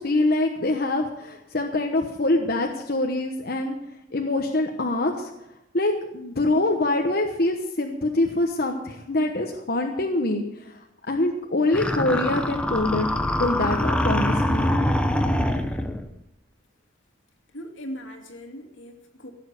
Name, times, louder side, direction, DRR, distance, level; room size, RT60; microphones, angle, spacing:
voice 1, 0.0-3.8 4.1-5.3 5.7-13.1 13.4-14.7, left 2 dB, 50° left, 2 dB, 1.1 m, -24 dB
sound 1, 11.7-16.1, left 1 dB, 5° left, 0.8 m, -24 dB
voice 2, 17.5-19.3, equal, 80° left, 2 dB, 2.5 m, -39 dB
16.5 x 7.3 x 8.3 m, 0.89 s
head